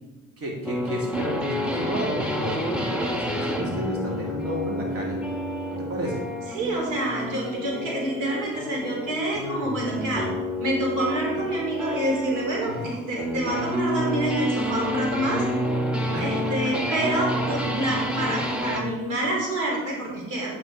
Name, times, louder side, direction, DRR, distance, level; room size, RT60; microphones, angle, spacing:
voice 1, 0.4-5.2 5.7-6.2 12.7-12.8 16.1-16.3 16.6-17.0 18.1-18.4, equal, 50° right, -2 dB, 2.8 m, -32 dB
sound 1, 0.7-18.9, equal, 5° right, 1.6 m, -29 dB
voice 2, 6.5-10.3 10.6-15.4 16.2-20.5, right 1 dB, 90° right, -1 dB, 3.2 m, -27 dB
9.0 x 7.5 x 4.6 m, 1.1 s
cardioid pair, 90°, 30 cm